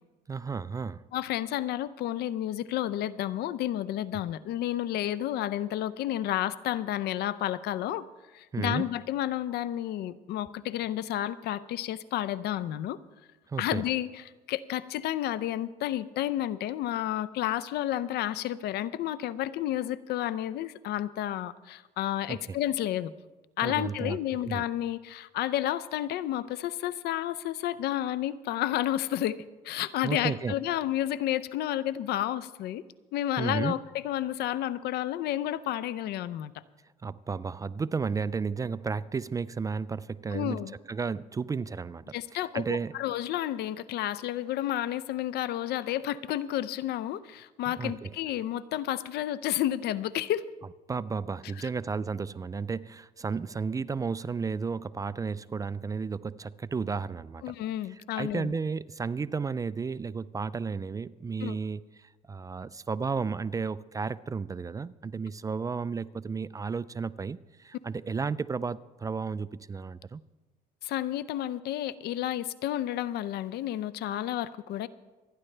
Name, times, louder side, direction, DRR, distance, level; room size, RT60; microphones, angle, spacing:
voice 1, 0.3-1.0 8.5-8.9 13.5-13.8 22.3-22.6 23.6-24.2 24.5-24.6 30.0-30.5 33.4-33.7 37.0-40.6 40.9-42.9 47.8-48.1 50.9-57.4 57.9-70.2, right 5 dB, 20° right, 0.3 m, -33 dB
voice 2, 1.1-8.1 8.3-13.0 13.6-23.1 23.6-32.8 33.1-36.5 40.3-40.7 42.1-50.4 57.4-58.5 61.4-61.6 70.8-74.9, left 12 dB, 75° left, 0.6 m, -31 dB
26.0 x 10.0 x 3.3 m
cardioid pair, 110°, 17 cm